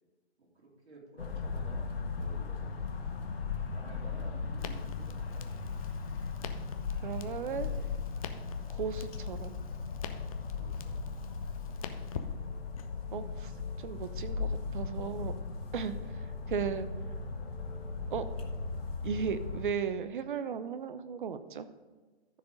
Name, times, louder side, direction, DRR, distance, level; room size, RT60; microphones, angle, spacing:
voice 1, 0.4-5.6 7.4-7.8 8.5-8.9 10.6-11.0 11.9-12.3 16.3-16.6, right 2 dB, 70° right, -2 dB, 3.6 m, -54 dB
sound 1, 1.2-19.7, left 4 dB, 60° left, 1.6 m, -37 dB
Crackle, 4.6-12.9, left 7 dB, 35° left, 0.6 m, -47 dB
voice 2, 7.0-7.7 8.7-9.7 13.1-15.3 15.7-16.9 18.1-18.2 19.0-21.7, right 7 dB, 50° right, 12 dB, 0.8 m, -36 dB
sound 2, 10.5-18.6, left 4 dB, 5° left, 1.2 m, -50 dB
13.5 x 4.9 x 5.2 m, 1.3 s
hypercardioid pair, 145°, 33 cm